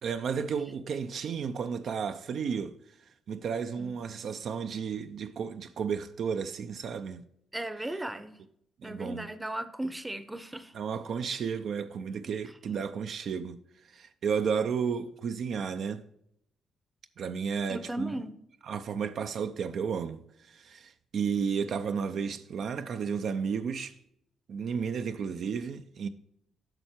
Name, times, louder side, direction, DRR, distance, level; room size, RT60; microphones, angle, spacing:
voice 1, 0.0-2.8 3.3-7.2 8.8-9.3 10.7-16.0 17.2-18.1 18.6-23.9 24.5-26.1, right 6 dB, 60° right, 0.5 m, -33 dB
voice 2, 7.5-8.4 8.8-10.7 17.7-18.3, right 1 dB, 10° right, 0.7 m, -36 dB
8.8 x 5.6 x 4.4 m
cardioid pair, 90°, 0 cm